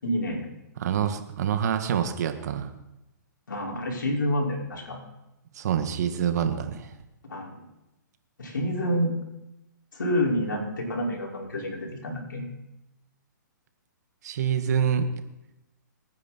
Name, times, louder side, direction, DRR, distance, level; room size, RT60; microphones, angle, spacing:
voice 1, 0.0-0.5 3.5-5.0 7.3-7.7 8.4-9.1 9.9-12.4, equal, 80° left, -1 dB, 5.6 m, -28 dB
voice 2, 0.8-2.7 5.6-6.9 14.2-15.1, right 8 dB, 55° right, 8 dB, 1.8 m, -26 dB
26.0 x 10.0 x 4.5 m, 0.91 s
hypercardioid pair, 135°, 10 cm